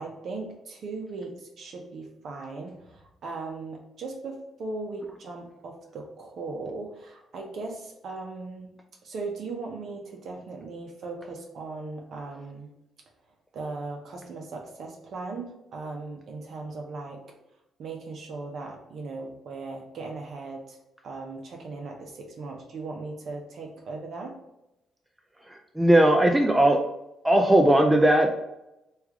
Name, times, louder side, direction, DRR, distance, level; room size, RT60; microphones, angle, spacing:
voice 1, 0.0-8.7 9.0-12.7 13.5-17.2 17.8-20.8 21.0-24.3, right 3 dB, 60° right, 0 dB, 0.6 m, -38 dB
voice 2, 25.5-26.8 27.2-28.4, right 1 dB, 10° right, 3 dB, 0.4 m, -19 dB
3.2 x 2.4 x 3.5 m, 0.90 s
cardioid pair, 90°, 0 cm